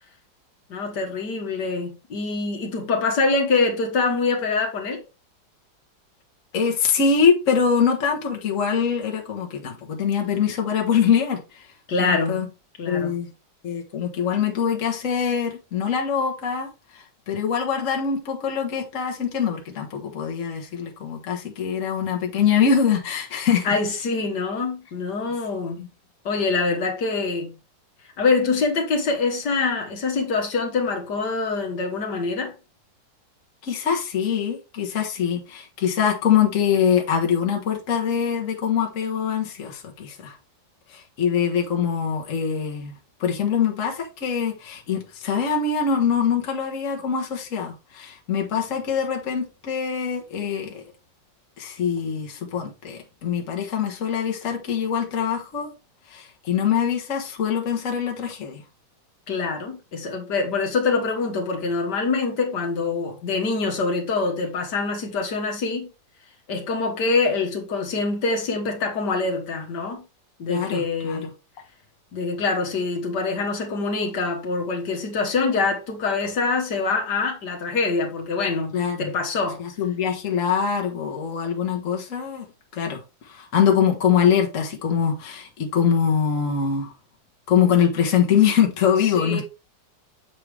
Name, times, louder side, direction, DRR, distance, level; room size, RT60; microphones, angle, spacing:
voice 1, 0.7-5.0 11.9-12.5 12.8-13.1 23.6-25.8 26.3-27.5 28.2-32.5 59.3-65.9 66.5-70.0 70.4-71.3 72.1-79.6 89.1-89.4, left 4 dB, 65° left, 1.9 m, -25 dB
voice 2, 6.5-11.7 12.0-12.5 12.9-13.3 13.6-23.7 25.8-25.9 33.6-40.3 40.9-42.9 43.2-50.8 51.6-55.7 56.1-58.6 70.5-71.2 78.7-79.1 79.6-82.4 82.7-86.9 87.5-89.4, left 7 dB, 45° left, 1.5 m, -23 dB
7.4 x 4.7 x 3.4 m
omnidirectional pair, 2.0 m